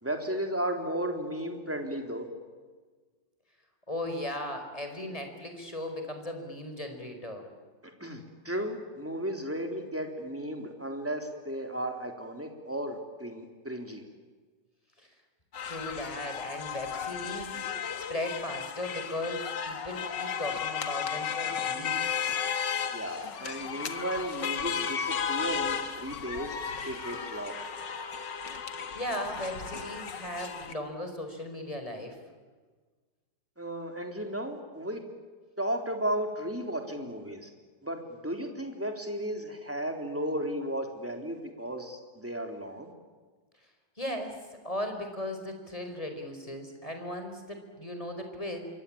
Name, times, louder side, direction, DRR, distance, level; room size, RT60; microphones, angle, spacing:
voice 1, 0.0-2.3 7.8-14.0 22.9-26.6 26.8-27.5 33.6-35.0 35.6-37.5 37.8-42.9, right 1 dB, 5° right, 4 dB, 3.8 m, -34 dB
voice 2, 3.9-7.4 15.0-15.1 15.6-17.6 18.0-22.2 28.7-32.2 44.0-44.4 44.6-48.6, left 1 dB, 20° left, 5 dB, 4.8 m, -37 dB
sound 1, 15.5-30.7, left 7 dB, 75° left, 2.3 m, -34 dB
27.5 x 23.5 x 8.8 m, 1.4 s
omnidirectional pair, 2.0 m